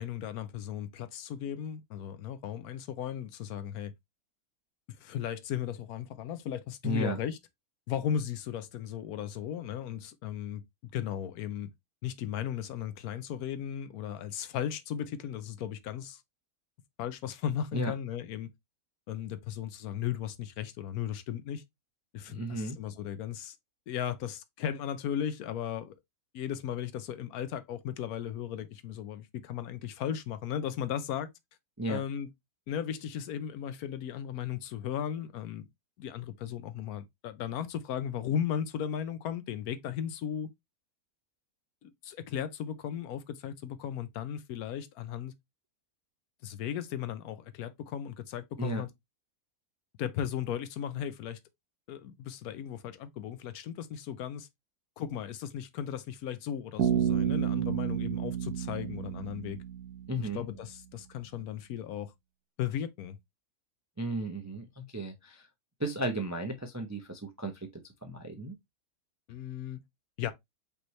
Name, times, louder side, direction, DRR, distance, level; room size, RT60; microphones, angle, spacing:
voice 1, 0.0-3.9 5.0-7.4 7.9-10.6 10.9-11.7 12.0-16.2 17.0-18.5 19.1-21.6 22.1-23.5 23.9-25.9 26.3-31.3 31.9-32.3 32.7-35.6 36.0-40.5 41.8-45.3 46.4-48.9 50.0-51.4 51.9-54.5 55.0-59.6 60.2-62.1 62.6-63.2 69.3-69.8 70.2-70.3, left 9 dB, 80° left, 1.1 m, -36 dB
voice 2, 6.8-7.2 17.7-17.9 22.3-22.8 31.8-32.1 48.6-48.9 60.1-60.4 64.0-65.5 65.8-68.6, right 1 dB, 25° right, 0.3 m, -34 dB
Bass guitar, 56.8-60.5, right 9 dB, 85° right, 1.2 m, -31 dB
5.2 x 3.1 x 3.0 m
omnidirectional pair, 1.6 m